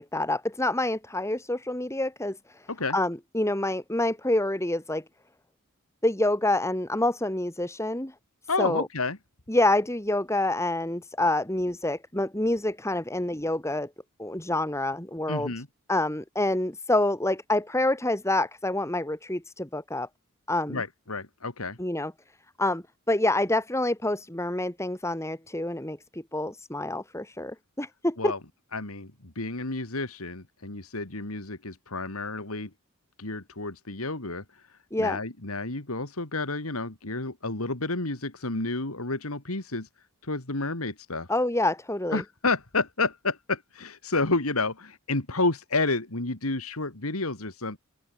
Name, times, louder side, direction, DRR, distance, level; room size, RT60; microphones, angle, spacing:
voice 1, 0.0-2.6 2.9-5.0 6.0-8.1 8.6-8.9 9.5-13.9 14.2-15.5 15.9-20.1 20.5-20.8 21.8-22.1 22.6-28.3 34.9-35.2 41.3-42.2, left 1 dB, 15° left, 3.2 m, -27 dB
voice 2, 8.5-9.2 15.3-15.7 20.7-21.8 28.2-28.4 28.7-32.7 33.2-34.4 35.0-39.9 40.2-41.3 42.1-47.8, left 3 dB, 80° left, 3.0 m, -30 dB
open air
head